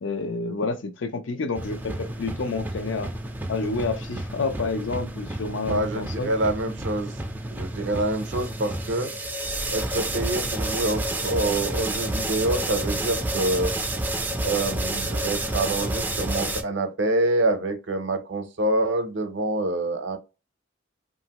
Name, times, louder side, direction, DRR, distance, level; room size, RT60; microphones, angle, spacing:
voice 1, 0.0-3.1 3.5-6.3, left 3 dB, 75° left, 0.5 m, -29 dB
sound 1, 1.5-16.6, right 1 dB, 10° right, 0.4 m, -30 dB
voice 2, 5.7-7.1 7.5-9.1 9.7-13.7 14.4-20.2, right 2 dB, 65° right, 0.6 m, -26 dB
2.8 x 2.5 x 2.8 m
head